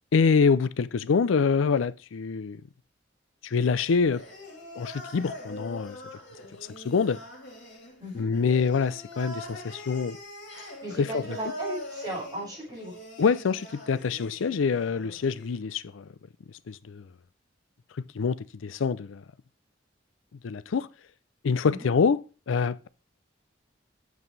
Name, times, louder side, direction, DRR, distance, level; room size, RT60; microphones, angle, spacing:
voice 1, 0.1-2.6 3.4-4.2 4.8-6.0 6.8-7.2 8.1-10.2 11.0-11.4 13.2-16.1 16.7-17.0 18.1-19.2 20.4-20.9 21.4-22.9, left 5 dB, 90° left, 0.4 m, -25 dB
sound 1, 3.5-15.5, left 1 dB, 60° left, 3.2 m, -43 dB
voice 2, 10.6-12.9 21.6-21.9, right 1 dB, 20° right, 5.3 m, -37 dB
8.2 x 7.1 x 3.3 m
head